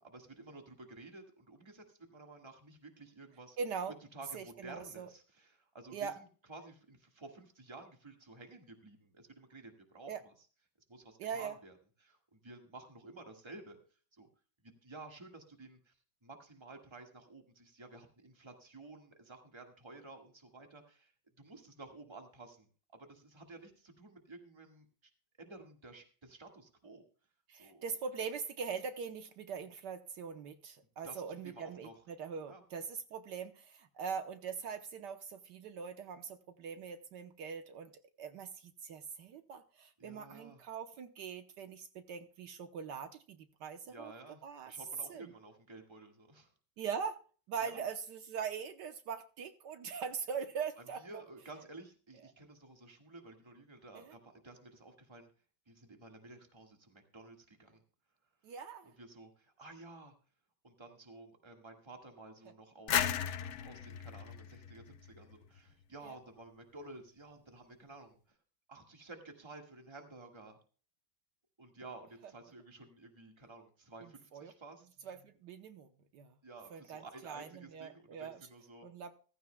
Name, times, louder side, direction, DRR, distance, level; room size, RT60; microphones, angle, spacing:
voice 1, 0.0-3.6 4.1-10.5 10.9-13.8 14.1-14.3 14.6-16.0 16.2-21.1 21.4-22.7 22.9-25.1 25.4-27.0 27.5-27.8 31.0-31.9 32.5-32.6 40.0-40.6 43.9-46.5 47.6-47.9 50.8-55.3 55.7-57.8 58.8-60.1 60.6-63.1 63.5-68.4 68.7-70.6 71.6-74.9 76.4-78.9, right 2 dB, 15° right, 4 dB, 1.5 m, -53 dB
voice 2, 3.6-3.9 4.3-5.1 5.9-6.1 10.1-10.2 11.2-11.5 27.5-37.9 38.2-44.1 44.4-44.7 45.1-45.3 46.8-47.2 47.5-51.2 53.9-54.1 58.4-58.9 66.0-66.2 74.3-74.5 75.1-75.9 76.1-76.3 76.7-78.4 78.8-79.1, right 6 dB, 75° right, 8 dB, 1.4 m, -42 dB
sound 1, 62.9-65.6, left 9 dB, 75° left, 0.6 m, -35 dB
15.0 x 14.5 x 2.2 m, 0.39 s
omnidirectional pair, 2.0 m